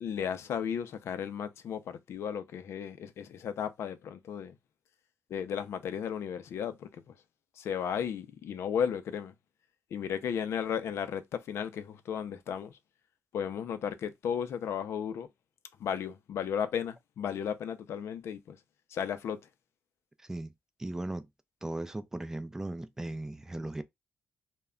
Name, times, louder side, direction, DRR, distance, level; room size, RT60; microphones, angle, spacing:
voice 1, 0.0-4.6 5.3-7.1 7.6-9.3 9.9-12.8 13.3-15.3 15.8-18.6 18.9-19.4, left 8 dB, 80° left, 0.4 m, -34 dB
voice 2, 20.8-21.3 21.6-23.8, right 2 dB, 10° right, 0.3 m, -37 dB
2.2 x 2.1 x 3.6 m
cardioid pair, 110°, 5 cm